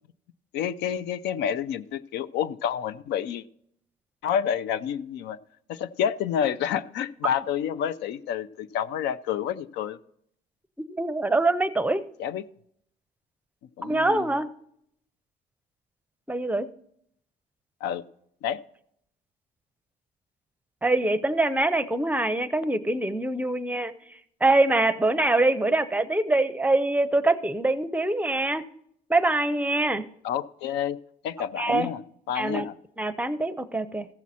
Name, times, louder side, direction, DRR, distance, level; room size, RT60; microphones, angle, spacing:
voice 1, 0.5-3.4 4.2-5.4 5.7-10.0 12.2-12.4 13.8-14.4 17.8-18.0 18.4-18.6 30.2-31.0 31.2-32.0 32.3-32.8, left 9 dB, 85° left, 17 dB, 0.6 m, -29 dB
voice 2, 10.9-12.0 13.8-14.5 16.3-16.7 20.8-23.9 24.4-28.6 29.1-30.0 31.6-31.9 32.4-32.7 33.0-34.1, right 2 dB, 10° right, 12 dB, 0.6 m, -24 dB
15.0 x 7.3 x 4.2 m, 0.70 s
cardioid pair, 110°, 17 cm